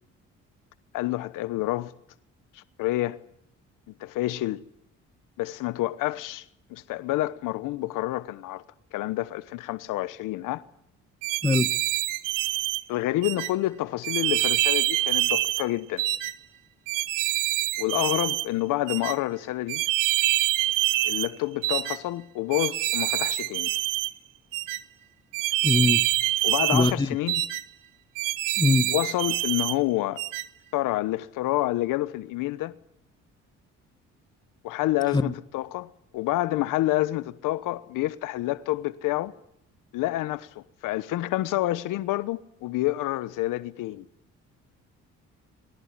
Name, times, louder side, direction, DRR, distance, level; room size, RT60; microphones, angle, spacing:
voice 1, 0.9-1.9 2.5-3.2 4.0-4.6 5.4-6.4 6.7-8.6 8.9-10.6 12.9-16.1 17.8-19.8 21.0-23.7 26.4-27.5 28.9-30.2 30.7-32.7 34.6-39.3 39.9-44.0, left 16 dB, 85° left, 1.1 m, -28 dB
sound 1, 11.2-12.8 13.2-13.5 14.0-15.7 16.0-16.3 16.9-18.5 18.9-19.1 19.7-21.3 21.6-22.0 22.5-24.1 24.5-24.8 25.3-27.0 27.3-27.6 28.2-29.8 30.2-30.5, right 16 dB, 85° right, 0.9 m, -26 dB
voice 2, 25.6-26.0 26.7-27.1 28.6-28.9 35.1-35.3, left 3 dB, 15° left, 1.2 m, -22 dB
22.0 x 19.0 x 9.6 m
supercardioid pair, 65°, 31 cm